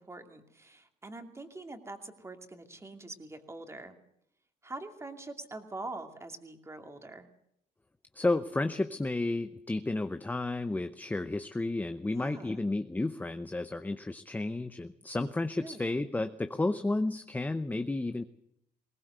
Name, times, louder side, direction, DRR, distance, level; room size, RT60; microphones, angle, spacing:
voice 1, 0.0-4.0 4.6-7.3 12.1-12.6 15.6-15.9, right 2 dB, 15° right, 6 dB, 2.6 m, -44 dB
voice 2, 8.1-18.2, left 2 dB, 10° left, 10 dB, 0.8 m, -32 dB
20.5 x 18.5 x 8.0 m, 0.74 s
cardioid pair, 110°, 17 cm